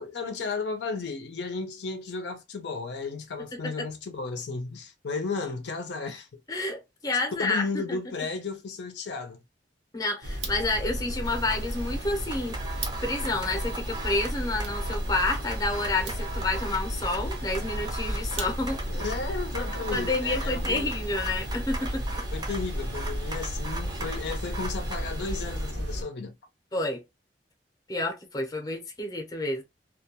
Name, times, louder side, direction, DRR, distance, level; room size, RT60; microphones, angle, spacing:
voice 1, 0.0-6.3 7.4-9.4 18.9-20.9 22.3-26.3, left 4 dB, 70° left, 0.5 m, -34 dB
voice 2, 6.5-8.0 9.9-18.8 19.9-22.0 26.7-27.0 27.9-29.6, left 2 dB, 20° left, 0.6 m, -29 dB
sound 1, 10.2-26.0, equal, 90° right, 1.0 m, -33 dB
sound 2, 10.3-19.0, right 6 dB, 70° right, 0.7 m, -45 dB
sound 3, 11.2-25.7, right 3 dB, 25° right, 0.5 m, -40 dB
2.2 x 2.2 x 2.8 m
head